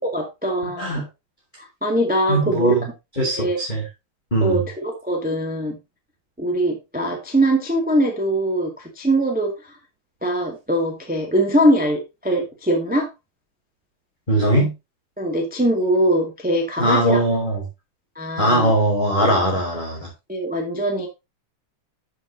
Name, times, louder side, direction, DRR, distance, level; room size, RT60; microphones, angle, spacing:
voice 1, 0.0-1.0 1.6-2.7 3.2-3.6 4.4-5.8 6.4-9.5 10.2-13.1 15.2-17.2 18.1-18.7 20.3-21.1, right 1 dB, 5° right, 1 dB, 1.4 m, -22 dB
voice 2, 2.3-2.9 3.2-3.8 4.3-4.6 14.3-14.7 16.8-17.6 18.4-20.1, right 1 dB, 15° left, -2 dB, 2.7 m, -20 dB
12.5 x 6.3 x 2.7 m, 0.24 s
omnidirectional pair, 3.6 m